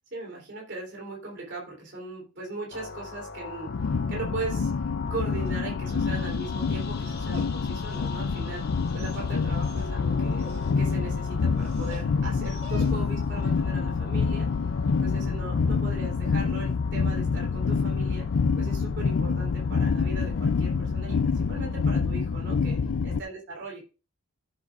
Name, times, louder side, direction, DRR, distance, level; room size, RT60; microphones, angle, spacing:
voice 1, 0.1-8.6 8.9-10.5 10.8-14.7 15.0-18.2 18.6-22.8 23.0-23.8, right 3 dB, 55° right, -2 dB, 3.2 m, -39 dB
sound 1, 2.7-22.0, left 4 dB, 45° left, 1.4 m, -42 dB
sound 2, 3.7-23.2, left 5 dB, 65° left, 0.4 m, -27 dB
Dog, 5.0-13.3, right 2 dB, 30° right, 2.3 m, -51 dB
14.5 x 7.6 x 2.5 m, 0.32 s
head